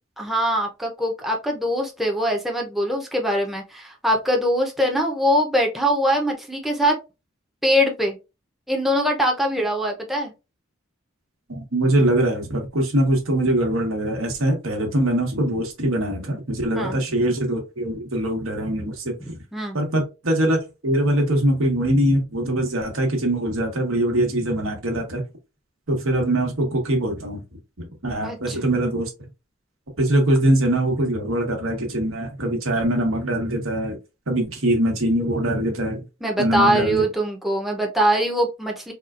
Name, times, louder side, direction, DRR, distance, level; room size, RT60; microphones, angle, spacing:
voice 1, 0.2-7.0 7.6-8.2 8.7-10.3 16.7-17.0 19.2-19.8 28.2-28.6 36.2-38.9, equal, ahead, 0.6 m, -22 dB
voice 2, 11.5-19.4 19.7-25.2 25.9-27.4 27.8-29.1 30.0-34.0 34.3-36.0 36.4-37.0, right 1 dB, 85° right, 1.3 m, -22 dB
4.1 x 2.3 x 2.4 m
head